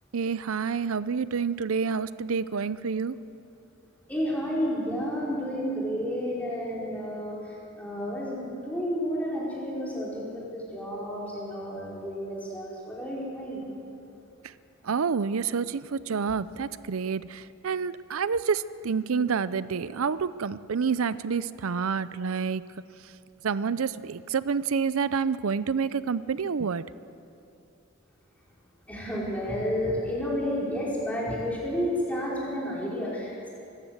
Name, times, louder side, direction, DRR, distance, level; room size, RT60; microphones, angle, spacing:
voice 1, 0.1-3.2 14.8-22.6 23.4-26.8, right 5 dB, 90° right, 16 dB, 0.5 m, -28 dB
voice 2, 4.1-7.4 7.8-13.7 28.9-33.5, equal, 5° left, -6 dB, 5.2 m, -31 dB
24.5 x 14.5 x 8.0 m, 2.7 s
head